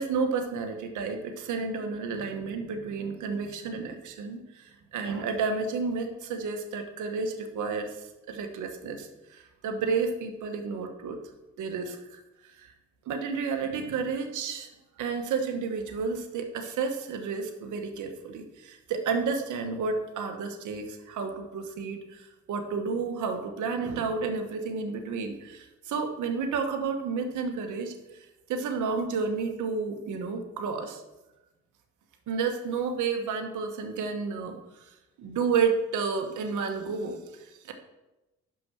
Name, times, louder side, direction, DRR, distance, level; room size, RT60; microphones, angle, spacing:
voice 1, 0.0-11.2 11.6-12.7 13.1-14.7 15.0-27.9 28.5-31.0 32.3-34.9 35.2-37.7, right 5 dB, 80° right, 5 dB, 1.2 m, -31 dB
6.0 x 5.7 x 6.3 m, 0.99 s
cardioid pair, 90°, 30 cm